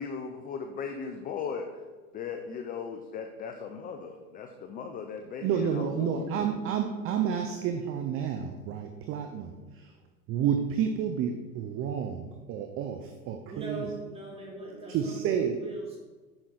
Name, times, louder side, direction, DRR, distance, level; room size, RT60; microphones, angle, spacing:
voice 1, 0.0-1.7 2.1-6.3, left 6 dB, 20° left, 5 dB, 0.5 m, -37 dB
voice 2, 5.4-9.9 10.3-13.9 14.9-15.6, right 8 dB, 30° right, 5 dB, 0.6 m, -30 dB
voice 3, 13.5-16.0, right 2 dB, 15° right, -3 dB, 2.7 m, -40 dB
8.7 x 6.0 x 4.0 m, 1.3 s
hypercardioid pair, 105°, 44 cm